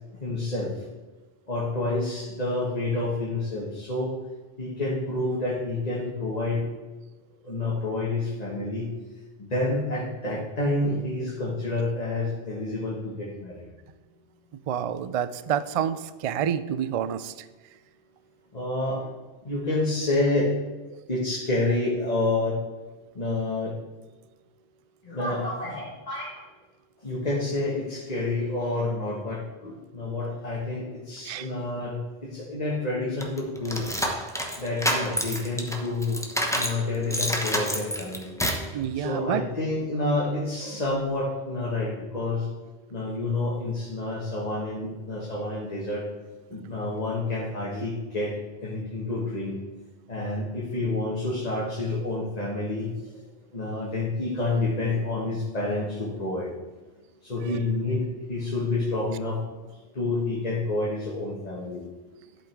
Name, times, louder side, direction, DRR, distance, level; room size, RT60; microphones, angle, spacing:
voice 1, 0.2-0.7 1.5-4.1 4.6-6.6 7.4-8.9 9.4-13.7 18.5-19.1 19.4-20.5 21.1-22.6 23.1-23.7 25.0-26.4 27.0-33.9 34.6-36.2 36.5-38.3 38.9-42.5 42.9-46.0 46.5-48.3 48.6-49.6 50.1-52.9 53.5-56.5 57.2-59.4 59.9-61.8, left 2 dB, 35° left, -4 dB, 1.6 m, -28 dB
voice 2, 14.7-17.3 31.2-31.5 38.7-39.4, right 9 dB, 70° right, 14 dB, 0.3 m, -28 dB
sound 1, 33.2-36.8 37.1-38.7, equal, 5° left, 0.8 m, -28 dB
11.5 x 5.3 x 4.5 m, 1.2 s
omnidirectional pair, 1.1 m